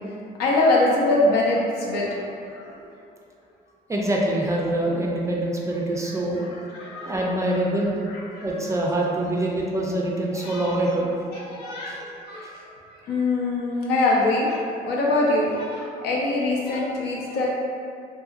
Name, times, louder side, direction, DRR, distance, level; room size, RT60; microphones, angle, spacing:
voice 1, 0.4-2.7 6.0-7.2 8.1-8.5 10.3-10.7 11.3-17.5, left 2 dB, 75° left, -4 dB, 0.6 m, -24 dB
voice 2, 3.9-6.6 7.0-8.0 8.4-11.1 11.6-12.1, right 1 dB, 20° right, -2 dB, 0.4 m, -25 dB
2.7 x 2.6 x 2.4 m, 2.4 s
cardioid pair, 110°, 17 cm